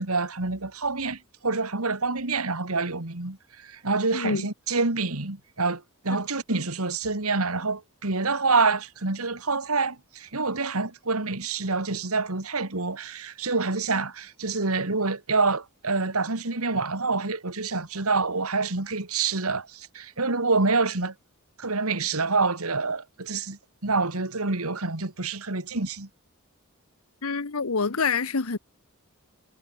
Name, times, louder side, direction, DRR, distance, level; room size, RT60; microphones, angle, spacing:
voice 1, 0.0-21.1 21.6-26.1, right 3 dB, 85° right, 2.5 m, -27 dB
voice 2, 4.1-4.5 27.2-28.6, left 4 dB, 80° left, 1.1 m, -26 dB
head